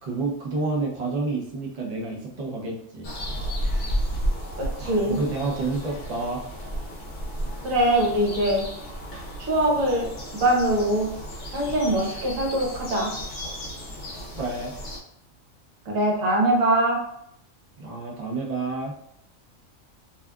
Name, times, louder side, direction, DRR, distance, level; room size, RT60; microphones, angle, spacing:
voice 1, 0.0-3.1 4.8-6.4 14.3-14.7 17.8-18.9, right 3 dB, 45° right, -3 dB, 0.5 m, -29 dB
sound 1, 3.0-15.0, equal, 55° left, 0.7 m, -33 dB
voice 2, 4.6-5.2 7.6-8.6 9.4-10.1 10.4-11.1 11.5-13.1 15.9-17.0, right 1 dB, 75° right, -2 dB, 1.2 m, -22 dB
2.7 x 2.3 x 2.3 m, 0.72 s
omnidirectional pair, 1.4 m